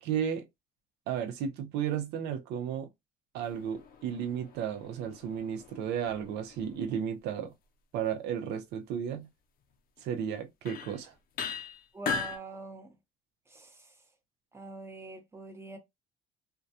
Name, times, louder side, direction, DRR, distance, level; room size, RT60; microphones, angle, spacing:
voice 1, 0.0-0.5 1.1-2.9 3.3-7.5 7.9-9.3 10.0-11.1, right 8 dB, 80° right, 0.5 m, -33 dB
sound 1, 3.4-6.9 10.0-10.1 10.7-11.0 11.4-12.4, left 5 dB, 60° left, 0.5 m, -39 dB
voice 2, 11.9-13.0 13.5-13.9 14.5-15.8, right 3 dB, 15° right, 0.8 m, -44 dB
2.3 x 2.2 x 2.6 m
cardioid pair, 110°, 17 cm